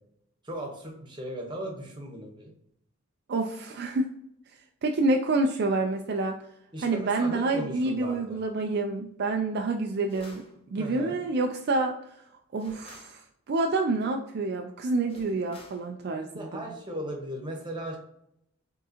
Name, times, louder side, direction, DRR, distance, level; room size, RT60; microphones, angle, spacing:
voice 1, 0.4-2.5 6.7-8.4 10.8-11.2 16.3-18.0, right 1 dB, 25° right, 1 dB, 1.1 m, -37 dB
voice 2, 3.3-4.1 4.8-6.4 6.8-10.4 10.7-12.1 12.5-13.2 13.5-16.7, right 2 dB, 55° right, 3 dB, 0.4 m, -28 dB
sound 1, 10.1-10.5 12.6-13.2 15.1-15.9, left 2 dB, 30° left, 0.9 m, -48 dB
4.8 x 3.7 x 2.9 m, 0.76 s
head